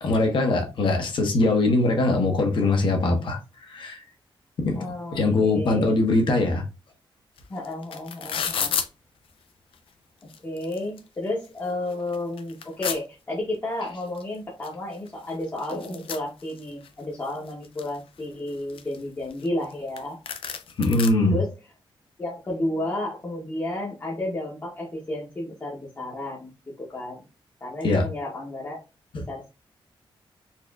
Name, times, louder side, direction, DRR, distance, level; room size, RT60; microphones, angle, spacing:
voice 1, 0.0-4.0 4.6-4.9 5.1-6.6 20.8-21.4 27.8-28.1 29.1-29.2, left 2 dB, 65° left, 0.9 m, -22 dB
voice 2, 4.7-6.0 7.5-8.7 10.4-20.2 21.3-21.5 22.2-26.5 26.8-27.2 27.6-28.8 29.3-29.5, left 1 dB, 25° left, 0.8 m, -32 dB
sound 1, 7.4-7.5 7.6-8.9 9.7-9.8 10.2-11.0 11.4-11.5 11.9-13.0 14.2-14.3 14.6-14.7 14.9-16.9 17.3-18.0 18.5-19.7 20.0-20.1 20.3-21.1, left 7 dB, 80° left, 0.4 m, -31 dB
4.1 x 2.4 x 2.2 m
wide cardioid pair, 175°, 9 cm